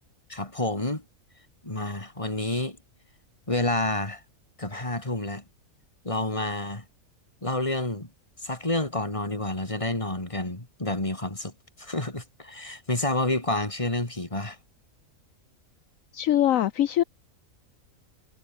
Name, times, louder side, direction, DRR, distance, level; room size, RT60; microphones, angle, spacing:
voice 1, 0.3-1.0 1.6-2.8 3.5-4.2 4.6-5.4 6.0-6.8 7.4-8.1 8.4-11.5 11.8-14.6, left 2 dB, 20° left, 3.4 m, -29 dB
voice 2, 16.1-17.0, left 12 dB, 70° left, 1.1 m, -22 dB
omnidirectional pair, 1.5 m